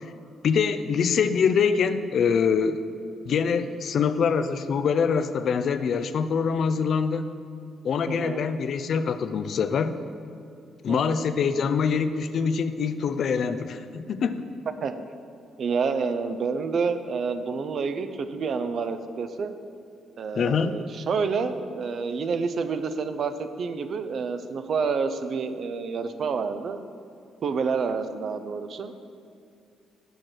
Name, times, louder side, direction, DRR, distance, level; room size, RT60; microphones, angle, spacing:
voice 1, 0.4-2.8 3.2-7.3 7.8-10.0 10.8-14.5 20.4-20.8, left 6 dB, 60° left, 11 dB, 0.3 m, -24 dB
voice 2, 8.1-8.4 10.9-11.2 14.8-14.9 15.6-19.5 20.2-26.8 27.4-28.9, right 5 dB, 55° right, 9 dB, 0.4 m, -28 dB
6.3 x 4.4 x 6.5 m, 2.4 s
cardioid pair, 90°, 0 cm